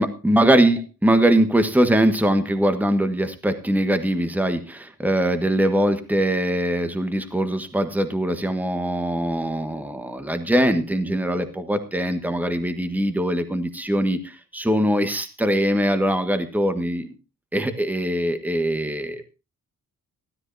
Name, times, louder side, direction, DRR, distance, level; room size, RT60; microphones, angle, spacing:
voice 1, 0.0-17.1 17.5-19.3, right 1 dB, 5° right, 8 dB, 1.5 m, -22 dB
15.0 x 13.5 x 2.7 m, 0.27 s
wide cardioid pair, 145°, 35 cm